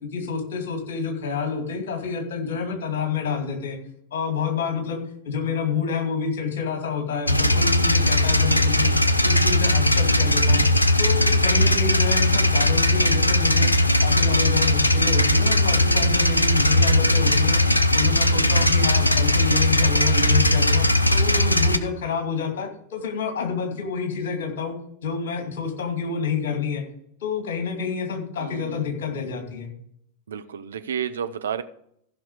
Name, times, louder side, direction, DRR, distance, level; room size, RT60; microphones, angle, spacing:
voice 1, 0.0-3.8 4.1-5.0 5.2-8.9 9.2-10.6 11.0-13.7 14.0-17.6 17.9-20.8 21.1-24.7 25.0-26.8 27.2-29.7, left 6 dB, 55° left, 4 dB, 2.4 m, -28 dB
sound 1, 7.3-21.8, left 1 dB, 85° left, 0.6 m, -19 dB
voice 2, 28.4-28.9 30.3-31.6, right 8 dB, 65° right, 10 dB, 0.7 m, -31 dB
15.0 x 5.9 x 4.9 m, 0.70 s
figure-of-eight pair, 90°, 0 cm